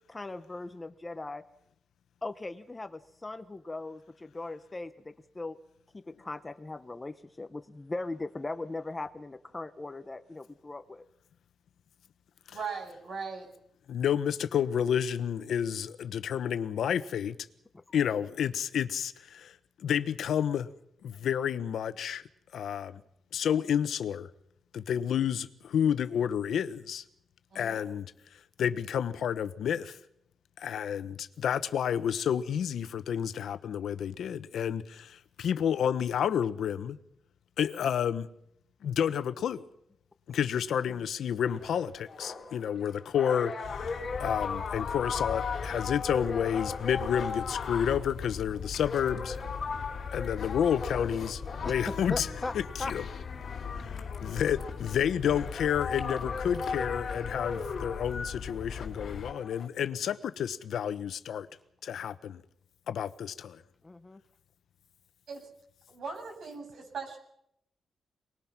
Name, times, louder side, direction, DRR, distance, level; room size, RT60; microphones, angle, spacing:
voice 1, 0.1-1.4 2.2-5.6 5.9-11.0 17.9-18.0 51.6-52.5 52.8-52.9 63.8-64.2, left 2 dB, 15° left, 0.8 m, -39 dB
voice 2, 12.5-13.5 27.5-27.8 65.3-65.4 65.9-66.6 66.9-67.2, right 5 dB, 55° right, 7.0 m, -38 dB
voice 3, 13.9-17.3 17.9-19.1 19.8-20.7 21.2-22.2 22.5-22.9 23.3-24.3 24.7-27.0 27.5-28.1 28.6-29.9 30.6-31.1 31.4-34.8 35.4-37.0 37.6-38.3 38.8-39.6 40.3-43.5 44.2-49.3 50.1-52.3 52.9-53.1 54.2-61.5 61.8-62.4 62.9-63.6, left 8 dB, 70° left, 1.1 m, -30 dB
sound 1, 41.5-59.7, left 5 dB, 35° left, 3.4 m, -38 dB
sound 2, 43.6-59.3, left 6 dB, 55° left, 3.5 m, -40 dB
27.5 x 20.5 x 6.1 m
wide cardioid pair, 170°, 0 cm